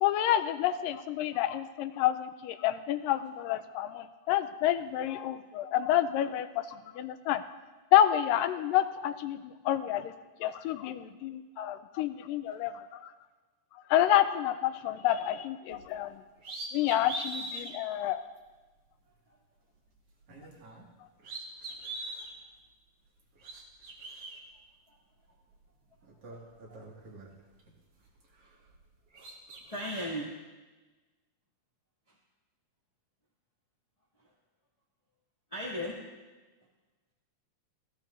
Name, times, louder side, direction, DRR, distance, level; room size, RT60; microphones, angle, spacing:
voice 1, 0.0-7.4 7.9-10.1 10.4-13.1 13.9-16.2 16.7-18.2, left 12 dB, 90° left, 10 dB, 2.3 m, -29 dB
sound 1, 15.7-15.9 16.4-17.7 18.4-18.5 20.2-20.9 21.2-22.3 23.2-24.4 25.5-25.6 26.0-27.7 28.0-28.9 29.1-30.0, right 2 dB, 45° right, 2.8 m, -42 dB
voice 2, 29.7-30.3 35.5-36.0, equal, 15° left, -6 dB, 1.8 m, -36 dB
20.0 x 15.0 x 2.6 m, 1.2 s
omnidirectional pair, 3.9 m